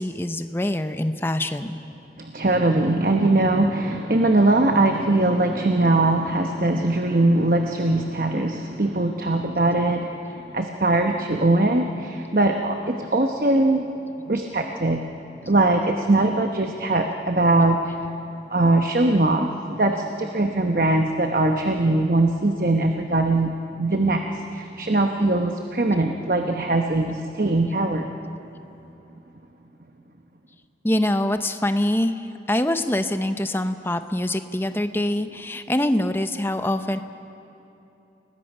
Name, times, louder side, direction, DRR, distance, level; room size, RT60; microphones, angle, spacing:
voice 1, 0.0-1.8 30.8-37.0, left 1 dB, 15° left, 9 dB, 0.7 m, -24 dB
voice 2, 2.2-13.9 14.3-15.0 15.4-18.0 18.5-23.5 23.8-28.0, right 2 dB, 50° right, 4 dB, 1.0 m, -21 dB
30.0 x 19.5 x 5.5 m, 3.0 s
head